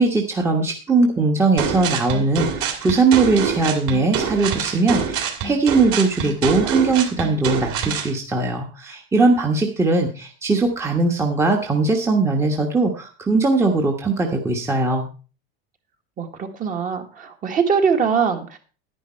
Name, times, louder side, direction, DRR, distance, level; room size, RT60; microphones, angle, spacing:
voice 1, 0.0-15.1, right 3 dB, 10° right, 1 dB, 1.2 m, -20 dB
sound 1, 1.6-8.1, right 7 dB, 45° right, 2.6 m, -25 dB
voice 2, 16.2-18.6, right 6 dB, 25° right, 5 dB, 1.6 m, -22 dB
11.0 x 10.0 x 4.3 m, 0.35 s
supercardioid pair, 145°, 31 cm